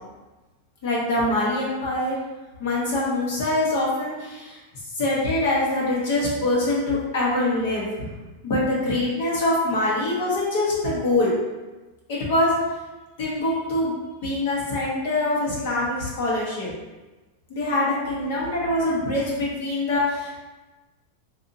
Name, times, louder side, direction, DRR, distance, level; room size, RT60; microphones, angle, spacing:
voice 1, 0.8-2.2 2.6-4.6 4.9-8.1 8.4-11.3 12.1-12.5 13.2-13.9 14.2-16.7 17.5-20.4, left 1 dB, 50° left, -5 dB, 1.1 m, -24 dB
3.8 x 2.6 x 2.7 m, 1.2 s
supercardioid pair, 180°, 0 cm